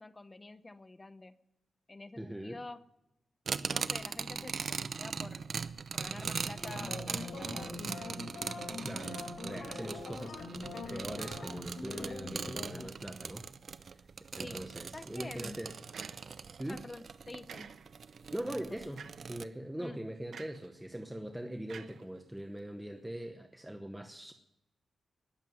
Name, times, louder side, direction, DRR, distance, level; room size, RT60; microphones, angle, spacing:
voice 1, 0.0-1.4 1.9-2.9 3.7-5.5 5.9-7.8 11.9-12.2 14.4-14.6 14.9-15.6 16.7-17.7 18.3-18.4 18.8-18.9 19.8-20.0, left 2 dB, 20° left, 13 dB, 0.7 m, -48 dB
voice 2, 2.2-2.6 8.8-10.4 10.9-13.5 13.9-14.0 14.3-15.8 16.6-16.8 18.3-24.3, right 1 dB, 5° right, 6 dB, 0.9 m, -42 dB
sound 1, 3.5-19.4, right 5 dB, 55° right, 0.7 m, -40 dB
sound 2, 6.5-12.9, left 3 dB, 85° left, 3.4 m, -43 dB
sound 3, 15.9-16.6 17.5-18.1 19.0-19.4 20.3-20.7 21.7-22.6, right 6 dB, 75° right, 1.0 m, -50 dB
20.0 x 7.3 x 9.3 m, 0.89 s
wide cardioid pair, 120°, 0 cm